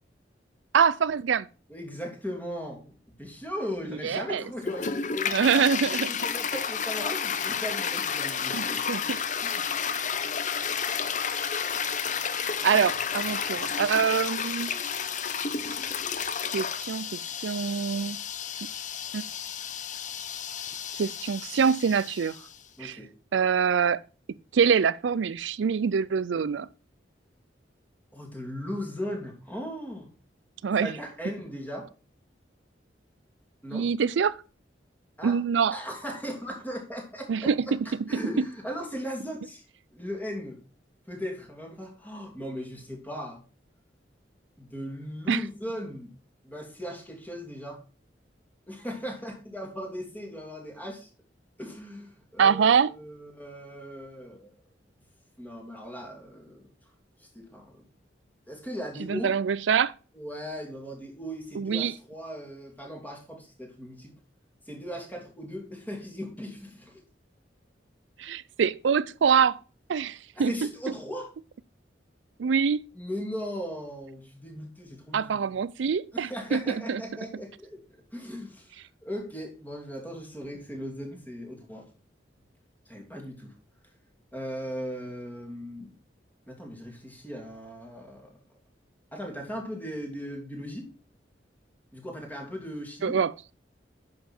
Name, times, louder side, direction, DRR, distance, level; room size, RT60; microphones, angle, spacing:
voice 1, 0.7-1.5 4.0-4.4 5.3-6.1 8.5-9.2 12.3-14.7 16.5-18.2 19.1-19.2 20.9-22.4 22.8-23.0 23.3-24.0 24.5-26.7 30.6-30.9 33.7-34.4 35.2-35.8 37.3-37.8 38.1-38.5 45.3-45.4 52.4-52.9 59.1-59.9 61.6-61.9 68.2-69.6 69.9-70.7 72.4-72.8 75.1-77.0 93.0-93.3, right 6 dB, 90° right, 0.4 m, -25 dB
voice 2, 1.7-2.9 3.2-8.8 9.4-10.1 22.8-23.1 28.1-30.1 30.8-31.9 33.6-33.9 35.2-35.4 35.7-37.5 37.8-39.6 39.9-40.6 41.1-43.4 44.6-46.1 46.4-47.8 48.7-51.1 51.6-54.5 55.4-56.7 57.2-57.9 58.5-59.3 60.1-64.1 64.7-67.0 70.3-71.3 72.9-75.5 76.1-77.8 78.1-81.8 82.9-83.5 84.3-85.9 86.5-88.3 89.1-90.9 91.9-93.2, equal, 10° left, 3.0 m, -38 dB
Toilet flush, 4.6-22.6, left 7 dB, 45° left, 0.8 m, -31 dB
10.5 x 6.7 x 4.4 m
head